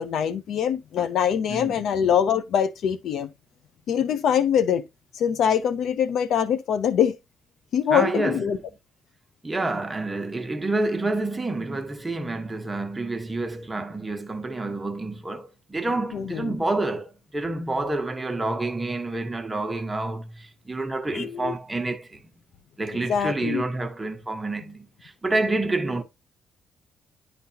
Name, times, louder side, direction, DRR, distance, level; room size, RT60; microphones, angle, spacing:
voice 1, 0.0-3.3 3.9-4.8 5.1-7.2 7.7-8.6 16.1-16.5 21.1-21.5 23.1-23.6, left 8 dB, 75° left, 0.6 m, -23 dB
voice 2, 1.5-1.8 7.9-8.6 9.4-22.2 22.8-26.0, right 2 dB, 15° right, 1.1 m, -28 dB
11.0 x 3.9 x 2.7 m
cardioid pair, 90°, 0 cm